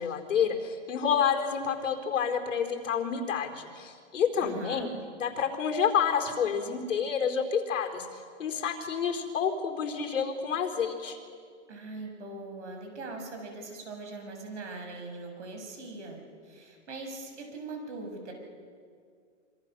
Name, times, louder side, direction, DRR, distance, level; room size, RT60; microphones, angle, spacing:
voice 1, 0.0-4.9 5.2-11.2, left 7 dB, 75° left, 4 dB, 4.2 m, -29 dB
voice 2, 4.4-4.9 11.7-18.3, right 3 dB, 65° right, 3 dB, 7.0 m, -41 dB
26.5 x 25.5 x 6.7 m, 2.1 s
hypercardioid pair, 175°, 37 cm